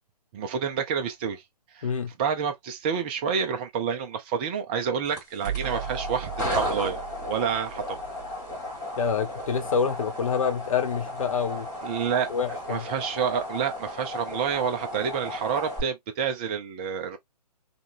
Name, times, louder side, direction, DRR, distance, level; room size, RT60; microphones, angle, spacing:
voice 1, 0.3-1.4 1.7-1.9 2.2-7.0 7.3-8.0 11.8-12.3 12.7-17.2, right 7 dB, 15° right, 0.4 m, -28 dB
voice 2, 1.8-2.1 9.0-11.7 12.3-12.9, left 6 dB, 55° left, 0.9 m, -27 dB
sound 1, 5.0-15.8, left 1 dB, 15° left, 1.4 m, -34 dB
sound 2, 5.4-9.3, right 10 dB, 30° right, 1.0 m, -38 dB
3.6 x 2.2 x 2.6 m
figure-of-eight pair, 140°, 21 cm